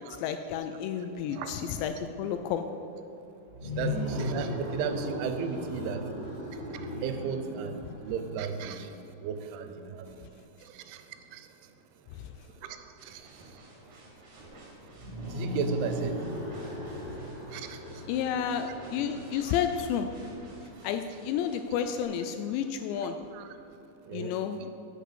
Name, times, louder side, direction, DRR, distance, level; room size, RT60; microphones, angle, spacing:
voice 1, 0.2-2.6 12.1-12.3 18.1-20.1 20.8-23.2 24.1-24.7, left 8 dB, 85° left, 8 dB, 2.6 m, -31 dB
sound 1, 3.5-8.6 14.9-20.6, left 1 dB, 25° left, 1.3 m, -37 dB
voice 2, 3.8-6.0 7.0-8.9 9.2-10.1 10.8-11.0 11.3-11.4 13.0-13.2 15.3-16.1 17.5-17.8 18.6-18.7 23.3-23.5 24.1-24.3, right 6 dB, 85° right, 8 dB, 3.1 m, -34 dB
sound 2, 13.0-22.0, right 1 dB, 55° right, 3.9 m, -52 dB
8.3 x 8.1 x 7.3 m, 2.9 s
omnidirectional pair, 5.4 m